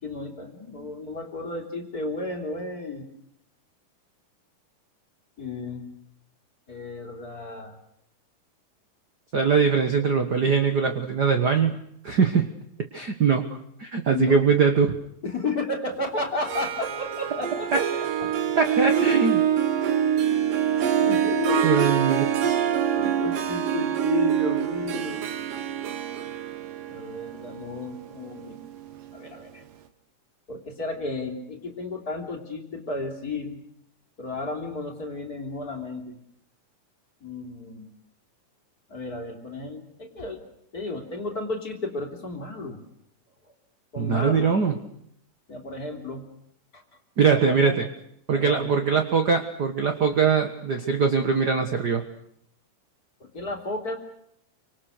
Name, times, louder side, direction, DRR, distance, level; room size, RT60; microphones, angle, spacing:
voice 1, 0.0-3.1 5.4-5.9 6.7-7.8 14.1-14.4 15.2-18.3 20.3-20.4 20.9-21.8 23.0-25.2 26.8-28.6 29.1-29.6 30.5-33.6 34.2-36.2 37.2-37.9 38.9-40.4 40.7-42.8 43.4-43.5 43.9-44.5 45.5-46.2 46.7-46.8 47.4-47.8 48.3-48.7 53.2-54.0, left 3 dB, 25° left, 2 dB, 3.5 m, -33 dB
voice 2, 9.3-11.8 12.0-12.5 12.9-13.4 13.8-14.9 17.7-17.8 18.5-19.4 21.6-22.3 44.0-44.8 47.2-47.9 48.3-52.0, right 5 dB, 50° right, 6 dB, 1.2 m, -22 dB
Harp, 16.3-29.2, right 9 dB, 75° right, 3.1 m, -25 dB
29.0 x 25.0 x 6.6 m, 0.73 s
omnidirectional pair, 3.9 m